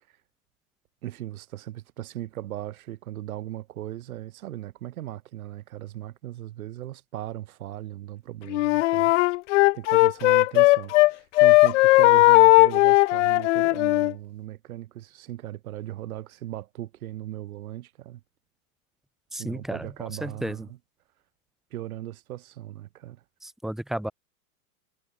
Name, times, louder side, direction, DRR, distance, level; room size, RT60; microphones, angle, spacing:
voice 1, 1.0-9.1 9.7-18.2 19.3-20.8 21.7-23.2, right 14 dB, 70° right, 3.0 m, -38 dB
Wind instrument woodwind instrument, 8.5-11.1 11.4-14.1, left 20 dB, 55° left, 0.7 m, -17 dB
voice 2, 19.3-19.9 20.2-20.6 23.4-24.1, right 1 dB, ahead, 2.1 m, -32 dB
supercardioid pair, 145°, 44 cm